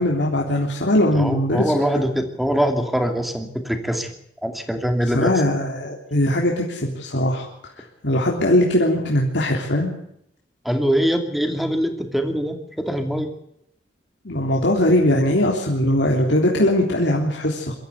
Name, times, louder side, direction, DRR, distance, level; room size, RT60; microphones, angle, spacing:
voice 1, 0.0-1.7 5.1-7.4 7.8-9.9 14.3-17.7, left 1 dB, 70° left, -2 dB, 3.4 m, -20 dB
voice 2, 1.1-4.1 4.4-5.3 10.6-13.3, equal, ahead, 6 dB, 2.6 m, -23 dB
24.0 x 13.5 x 8.3 m, 0.75 s
head